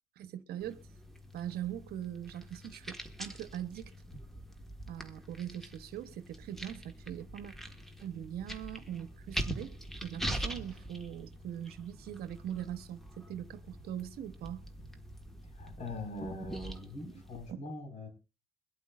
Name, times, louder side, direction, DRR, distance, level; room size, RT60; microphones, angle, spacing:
voice 1, 0.2-0.8 1.3-3.9 4.9-7.5 8.0-9.8 10.0-14.6 17.5-17.6, right 10 dB, 70° right, 1.0 m, -41 dB
sound 1, 0.6-17.5, equal, ahead, 1.5 m, -44 dB
voice 2, 15.5-18.1, left 1 dB, 45° left, 4.7 m, -42 dB
22.5 x 8.2 x 2.5 m
cardioid pair, 110°, 17 cm